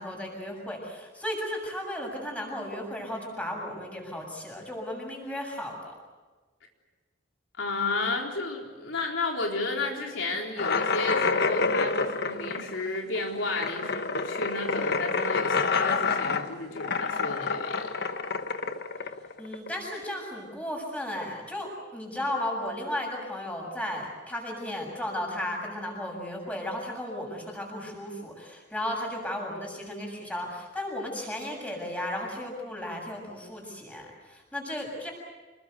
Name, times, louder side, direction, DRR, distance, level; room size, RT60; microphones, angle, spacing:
voice 1, 0.0-6.0 19.4-35.1, left 1 dB, 10° left, 0 dB, 7.4 m, -35 dB
voice 2, 7.6-17.9, left 2 dB, 80° left, 0 dB, 4.0 m, -32 dB
sound 1, 10.6-20.0, left 4 dB, 60° left, 1.3 m, -28 dB
27.0 x 22.0 x 8.2 m, 1.3 s
head